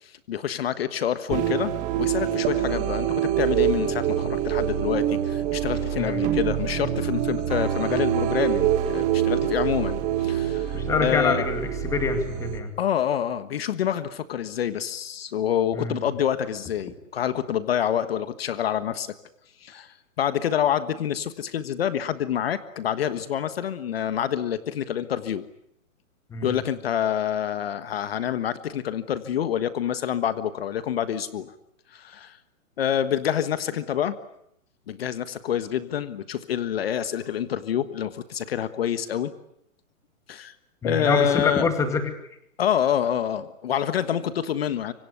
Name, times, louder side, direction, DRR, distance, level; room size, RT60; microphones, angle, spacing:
voice 1, 0.0-1.7 2.0-11.4 12.8-19.1 19.6-25.4 26.4-31.5 31.9-32.4 32.8-34.2 34.9-39.3 40.3-40.5 40.8-41.7 42.6-44.9, left 9 dB, 45° left, 12 dB, 1.5 m, -27 dB
sound 1, 1.3-12.6, right 11 dB, 20° right, 2.0 m, -25 dB
voice 2, 10.7-12.7 15.7-16.0 26.3-26.6 40.8-42.2, left 4 dB, 5° left, 7 dB, 2.2 m, -26 dB
26.5 x 25.0 x 8.2 m, 0.75 s
hypercardioid pair, 165°, 41 cm